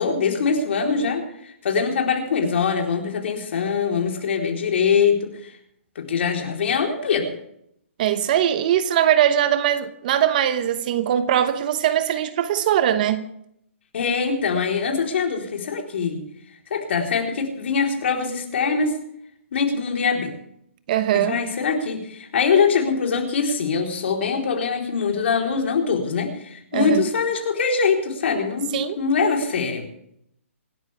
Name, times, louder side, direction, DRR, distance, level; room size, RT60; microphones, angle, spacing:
voice 1, 0.0-5.5 6.0-7.3 13.9-16.2 16.7-19.0 19.5-20.4 21.1-29.8, left 5 dB, 55° left, 4.1 m, -23 dB
voice 2, 8.0-13.3 20.9-21.4 26.7-27.0 28.7-29.0, right 10 dB, 40° right, 1.0 m, -21 dB
25.5 x 13.0 x 3.5 m
hypercardioid pair, 160°, 7 cm